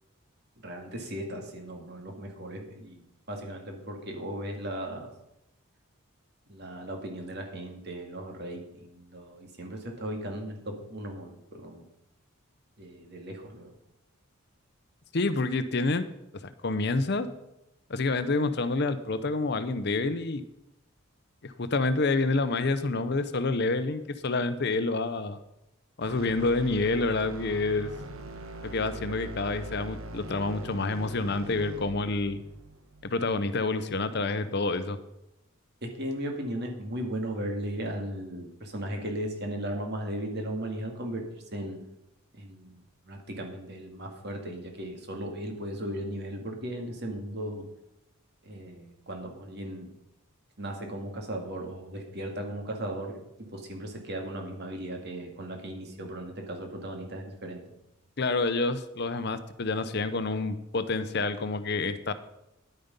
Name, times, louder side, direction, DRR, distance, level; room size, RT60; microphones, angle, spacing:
voice 1, 0.6-5.1 6.5-11.8 12.8-13.7 35.8-41.3 41.5-41.8 42.3-47.6 48.4-49.9 50.6-57.6, right 1 dB, 50° right, 3 dB, 2.1 m, -37 dB
voice 2, 15.1-16.0 16.6-17.3 17.9-20.4 21.4-25.4 26.0-27.9 28.6-32.4 33.0-35.0 58.2-62.1, left 3 dB, 50° left, 11 dB, 0.7 m, -28 dB
sound 1, 26.0-34.2, right 2 dB, 75° right, 1.1 m, -43 dB
10.5 x 9.3 x 5.3 m, 0.88 s
head